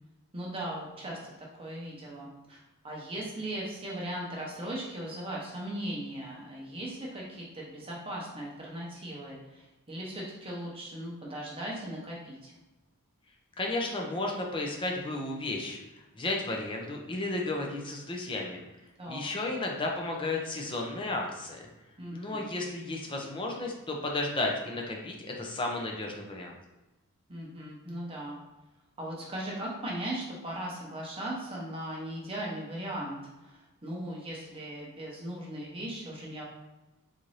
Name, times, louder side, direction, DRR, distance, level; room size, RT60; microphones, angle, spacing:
voice 1, 0.3-2.6 2.8-12.5 19.0-19.3 22.0-22.5 27.3-28.4 29.0-36.4, right 1 dB, 25° right, -3 dB, 0.7 m, -38 dB
voice 2, 13.6-15.8 16.1-18.6 19.1-21.6 22.1-26.5, left 2 dB, 20° left, 0 dB, 0.5 m, -33 dB
3.9 x 2.6 x 3.1 m, 1.0 s
head